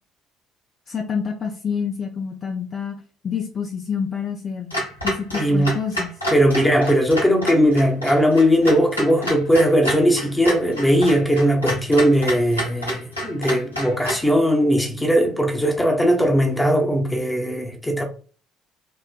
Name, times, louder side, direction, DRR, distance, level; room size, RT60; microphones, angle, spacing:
voice 1, 0.9-3.0 3.2-4.7 5.0-6.1, left 6 dB, 40° left, 0.3 m, -27 dB
Clock, 4.7-14.3, equal, 90° left, 0.6 m, -29 dB
voice 2, 5.3-5.8 6.3-18.0, equal, 10° left, 0.7 m, -19 dB
3.0 x 2.0 x 2.2 m
figure-of-eight pair, 50°, 0 cm